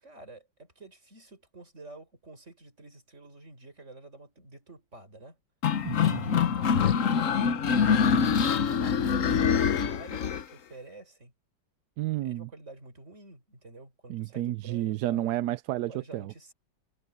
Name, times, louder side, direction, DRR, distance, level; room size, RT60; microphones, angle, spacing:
voice 1, 0.0-5.4 6.4-11.3 12.2-15.3 15.9-16.5, right 2 dB, 40° right, 5.5 m, -50 dB
sound 1, 5.6-10.4, left 7 dB, 50° left, 1.2 m, -24 dB
voice 2, 5.8-6.6 12.0-12.5 14.1-16.3, right 14 dB, 70° right, 1.0 m, -31 dB
omnidirectional pair, 2.0 m